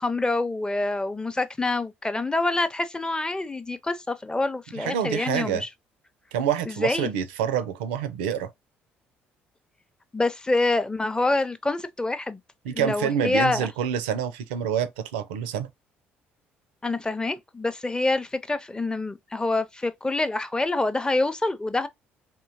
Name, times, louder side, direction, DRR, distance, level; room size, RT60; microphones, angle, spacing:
voice 1, 0.0-5.7 6.7-7.1 10.1-12.4 12.8-13.7 16.8-21.9, left 2 dB, 15° left, 0.6 m, -26 dB
voice 2, 4.8-5.6 6.3-8.5 12.6-15.7, right 8 dB, 80° right, 0.4 m, -27 dB
3.7 x 2.8 x 2.6 m
hypercardioid pair, 50°, 6 cm